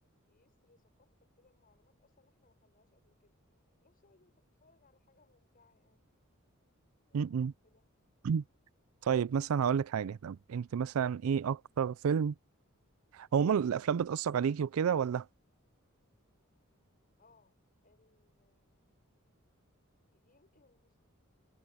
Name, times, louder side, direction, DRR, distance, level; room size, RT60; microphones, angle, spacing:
voice 1, 0.0-3.4 3.8-6.1 7.1-7.9 17.2-19.0 20.1-21.0, left 3 dB, 45° left, 6.8 m, -70 dB
voice 2, 7.1-7.5 8.2-8.4 9.0-12.3 13.1-15.3, right 7 dB, 85° right, 0.4 m, -30 dB
head